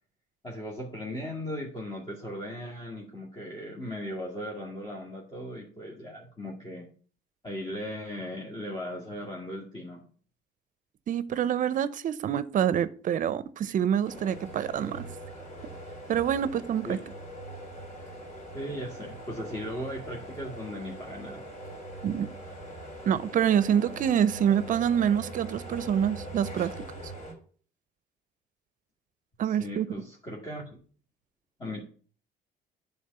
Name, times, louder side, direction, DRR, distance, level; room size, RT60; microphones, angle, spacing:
voice 1, 0.4-6.9 7.4-10.0 16.8-17.0 18.5-21.5 29.4-30.8 31.6-31.8, equal, 25° left, 2.3 m, -37 dB
voice 2, 11.1-15.1 16.1-17.0 22.0-22.3 23.1-26.7 29.4-29.9, right 9 dB, 50° right, 0.7 m, -26 dB
sound 1, 14.0-27.3, right 1 dB, 45° left, 3.9 m, -42 dB
9.7 x 3.7 x 6.6 m
cardioid pair, 110°, 17 cm